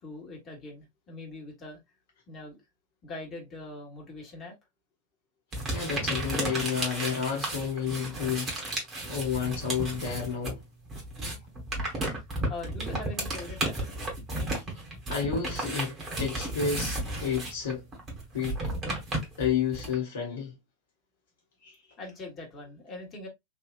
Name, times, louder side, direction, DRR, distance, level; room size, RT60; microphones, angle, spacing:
voice 1, 0.0-1.8 2.3-2.6 3.0-4.5 12.5-13.7 22.0-23.3, left 2 dB, 25° left, 1.4 m, -42 dB
sound 1, 5.5-10.6 10.9-19.9, right 2 dB, 25° right, 1.6 m, -33 dB
voice 2, 5.7-8.8 9.1-10.6 15.1-17.9 18.3-18.7 19.4-20.6 21.6-21.8, left 7 dB, 60° left, 1.1 m, -31 dB
3.5 x 2.7 x 2.4 m
figure-of-eight pair, 90°, 0 cm